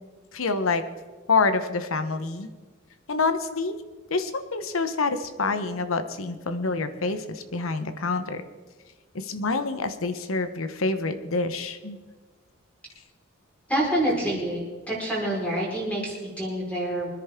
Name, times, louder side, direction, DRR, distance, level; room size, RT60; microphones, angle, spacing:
voice 1, 0.3-0.8 1.3-2.5 3.1-3.7 4.1-8.4 9.1-12.0, left 3 dB, 85° left, 10 dB, 1.0 m, -27 dB
voice 2, 13.7-14.6 14.9-17.1, right 1 dB, 5° left, -5 dB, 4.7 m, -27 dB
24.5 x 10.5 x 3.7 m, 1.3 s
head